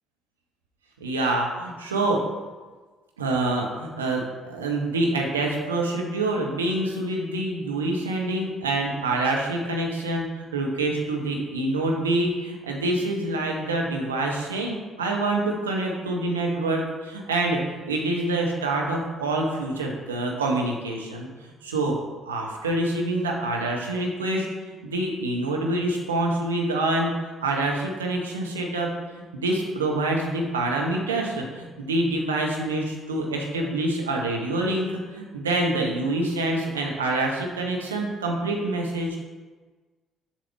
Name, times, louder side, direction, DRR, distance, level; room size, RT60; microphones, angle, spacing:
voice 1, 1.0-2.2 3.2-21.3 21.6-22.0 22.2-24.5 24.8-28.9 29.1-39.2, right 2 dB, 85° right, 0 dB, 1.1 m, -26 dB
7.3 x 6.7 x 3.5 m, 1.3 s
figure-of-eight pair, 50°, 0 cm